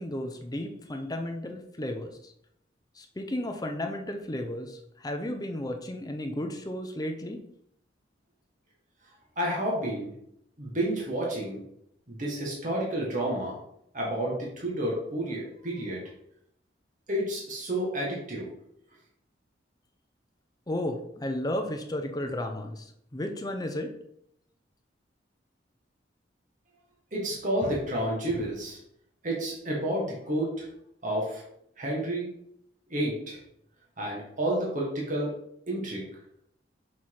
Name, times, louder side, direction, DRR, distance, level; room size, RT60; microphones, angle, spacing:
voice 1, 0.0-2.3 3.0-7.4 20.7-23.9, left 1 dB, 20° left, 4 dB, 0.7 m, -33 dB
voice 2, 9.3-10.1 10.6-11.6 12.1-13.6 13.9-16.0 17.1-18.5 27.1-28.8 29.2-30.7 31.0-31.4 31.8-32.3 32.9-33.4 34.0-35.3 35.7-36.1, right 1 dB, 45° right, -4 dB, 1.7 m, -30 dB
6.1 x 4.4 x 4.7 m, 0.74 s
head